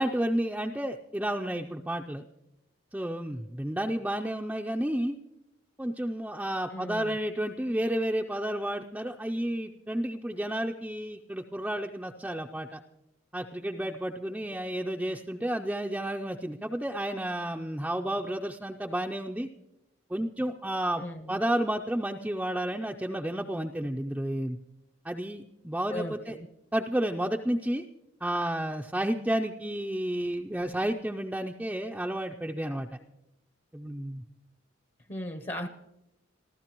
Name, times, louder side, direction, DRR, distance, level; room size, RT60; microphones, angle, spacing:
voice 1, 0.0-2.2 2.9-5.2 5.8-12.8 13.3-19.5 20.1-24.6 25.0-26.4 26.7-27.8 28.2-33.0 33.7-34.2, right 1 dB, 5° right, 1 dB, 0.4 m, -31 dB
voice 2, 6.7-7.2 21.0-21.4 25.9-26.5 35.1-35.7, left 1 dB, 30° left, 7 dB, 0.7 m, -37 dB
27.5 x 14.5 x 3.0 m, 0.89 s
head